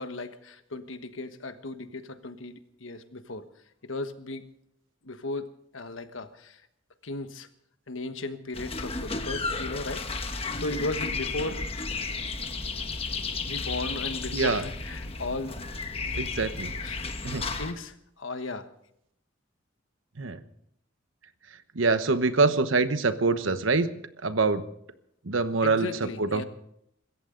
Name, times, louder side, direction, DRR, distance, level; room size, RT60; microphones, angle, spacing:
voice 1, 0.0-3.5 3.8-4.4 5.0-6.6 7.0-7.5 7.9-11.6 13.4-15.6 16.8-17.0 17.6-18.7 25.6-26.4, left 2 dB, 85° left, 9 dB, 1.3 m, -36 dB
sound 1, 8.5-17.7, left 4 dB, 30° left, 1.3 m, -33 dB
voice 2, 14.3-14.6 16.1-16.7 17.2-17.4 20.2-20.4 21.7-23.9 24.2-24.6 25.2-26.4, right 3 dB, 85° right, 11 dB, 1.1 m, -25 dB
25.5 x 14.0 x 3.9 m, 0.75 s
head